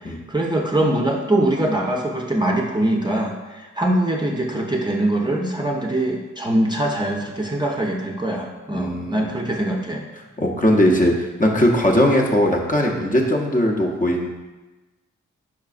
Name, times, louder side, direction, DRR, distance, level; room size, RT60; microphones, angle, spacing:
voice 1, 0.0-10.0, right 1 dB, 15° right, -1 dB, 0.6 m, -23 dB
voice 2, 8.7-9.5 10.4-14.3, left 1 dB, 25° left, 0 dB, 0.7 m, -19 dB
4.8 x 4.5 x 2.5 m, 1.1 s
supercardioid pair, 45°, 32 cm